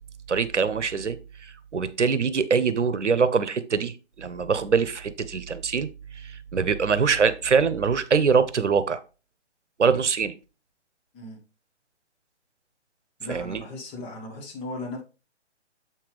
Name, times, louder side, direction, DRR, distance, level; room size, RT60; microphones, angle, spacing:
voice 1, 0.3-5.9 6.1-9.0 9.8-10.3 13.3-13.6, right 5 dB, 80° right, 0.9 m, -24 dB
voice 2, 13.2-15.0, left 2 dB, 15° left, 1.7 m, -37 dB
7.7 x 5.8 x 3.3 m
figure-of-eight pair, 140°, 35 cm